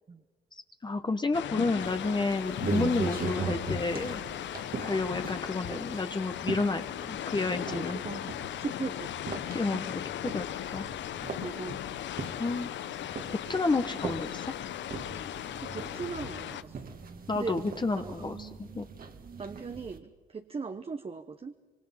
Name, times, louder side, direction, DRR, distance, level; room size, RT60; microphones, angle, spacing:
voice 1, 0.8-4.2 4.8-8.0 9.5-10.0 10.3-10.5 10.7-10.9 12.4-12.7 13.3-14.5 17.3-18.9, left 3 dB, 20° left, 7 dB, 1.2 m, -30 dB
sound 1, 1.3-16.6, left 11 dB, 65° left, 0.7 m, -37 dB
sound 2, 1.8-20.0, right 4 dB, 45° right, 1.8 m, -40 dB
voice 2, 7.7-8.3 8.6-9.9 11.4-11.8 15.6-17.0 17.3-17.6 17.9-18.2 19.4-21.5, right 5 dB, 30° right, 7 dB, 1.0 m, -39 dB
26.0 x 24.0 x 5.8 m, 1.4 s
cardioid pair, 90°, 20 cm